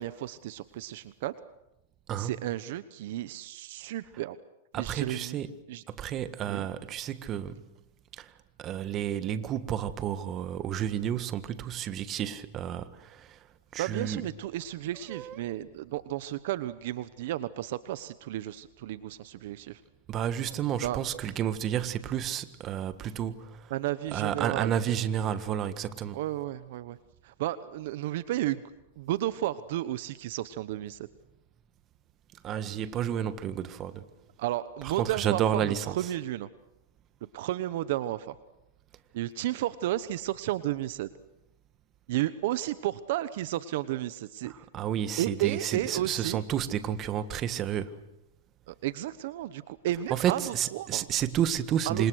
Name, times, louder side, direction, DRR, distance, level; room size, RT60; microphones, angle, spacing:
voice 1, 0.0-1.3 2.2-4.4 4.7-5.4 5.7-5.8 6.5-6.7 13.8-19.8 20.8-21.0 23.7-24.7 26.1-27.0 27.2-28.6 29.0-31.1 34.4-36.5 37.3-38.3 39.1-41.1 42.1-44.5 45.2-46.4 48.7-51.0 51.9-52.0, right 14 dB, 65° right, 1.1 m, -32 dB
voice 2, 4.7-5.5 5.9-7.7 8.1-8.3 8.6-13.4 13.7-14.2 15.1-15.4 20.1-23.7 24.1-26.2 32.4-34.1 34.8-36.1 44.4-48.0 50.1-52.1, right 10 dB, 30° right, 1.6 m, -31 dB
28.5 x 26.0 x 6.5 m
supercardioid pair, 140°, 0 cm